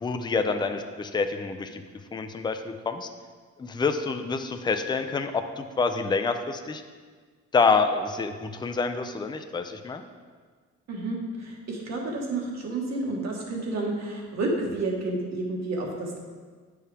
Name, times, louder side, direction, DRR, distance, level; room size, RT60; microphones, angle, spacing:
voice 1, 0.0-1.8 2.1-3.1 3.6-6.8 7.5-10.0, left 4 dB, 15° left, 7 dB, 0.4 m, -27 dB
voice 2, 10.9-16.2, right 2 dB, 60° right, -1 dB, 1.5 m, -30 dB
8.5 x 4.7 x 3.4 m, 1.6 s
cardioid pair, 90°, 30 cm